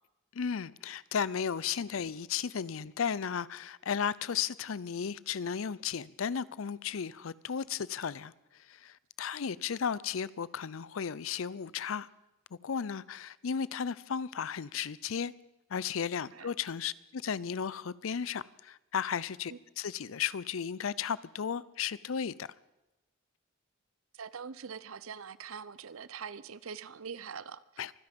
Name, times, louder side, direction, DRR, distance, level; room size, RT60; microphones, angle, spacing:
voice 1, 0.3-8.3 8.7-12.1 12.6-15.3 15.7-22.5 27.8-27.9, left 7 dB, 75° left, 0.5 m, -34 dB
voice 2, 24.1-27.8, right 6 dB, 85° right, 0.7 m, -43 dB
24.0 x 10.5 x 5.3 m
head